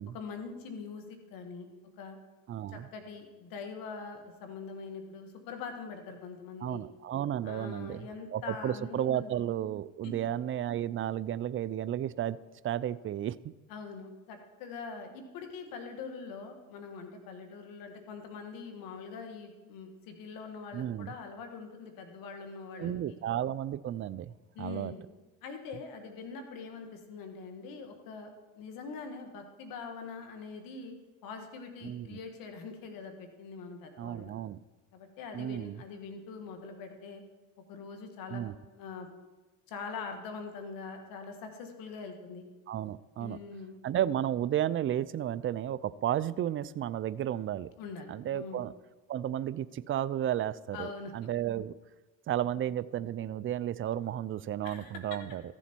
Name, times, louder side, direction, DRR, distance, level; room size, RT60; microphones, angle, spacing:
voice 1, 0.1-1.7 2.0-2.2 2.7-6.8 7.4-9.3 10.0-10.1 13.7-23.2 24.5-25.0 25.4-30.9 31.2-34.4 34.9-37.2 37.7-39.1 39.7-42.4 43.2-43.8 47.8-48.6 50.7-51.1 52.4-52.6 54.6-55.2, left 5 dB, 75° left, 5 dB, 1.7 m, -43 dB
voice 2, 2.5-2.9 6.6-12.4 12.6-13.4 20.7-21.1 22.8-24.3 24.6-24.9 31.8-32.2 34.0-34.6 35.3-35.8 38.3-38.5 42.7-43.4 43.8-47.7 48.1-48.7 49.1-51.7 52.3-55.4, right 11 dB, 40° right, 18 dB, 0.4 m, -33 dB
14.5 x 7.1 x 4.5 m, 1.2 s
supercardioid pair, 85°, 34 cm